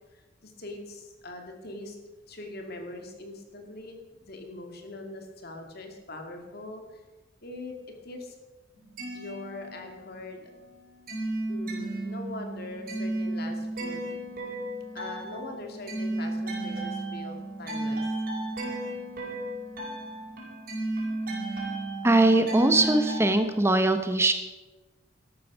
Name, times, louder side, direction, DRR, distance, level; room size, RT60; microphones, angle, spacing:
voice 1, 0.1-2.0 2.3-7.0 7.4-7.7 8.0-8.3 9.1-10.5 11.5-14.1 14.9-18.1, left 2 dB, 55° left, 4 dB, 2.4 m, -42 dB
sound 1, 8.7-10.2 10.5-23.4, right 2 dB, 50° right, 5.1 m, -34 dB
voice 2, 22.0-24.3, right 2 dB, 15° right, 7 dB, 0.7 m, -21 dB
14.0 x 11.0 x 6.2 m, 1.2 s
head